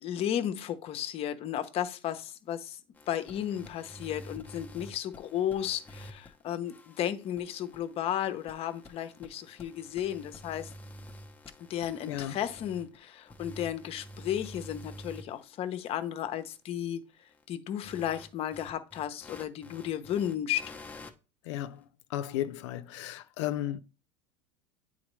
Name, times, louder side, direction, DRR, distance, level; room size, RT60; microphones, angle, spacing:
voice 1, 0.0-2.8 3.1-10.7 11.7-17.0 17.5-20.7, left 10 dB, 40° left, 0.8 m, -34 dB
sound 1, 3.0-6.4 6.6-13.0 13.3-15.4 15.8-15.9 17.8-21.1, left 1 dB, 10° left, 0.8 m, -48 dB
voice 2, 21.5-21.8 22.1-23.8, left 12 dB, 80° left, 0.6 m, -34 dB
8.6 x 4.1 x 3.1 m
supercardioid pair, 120°, 15 cm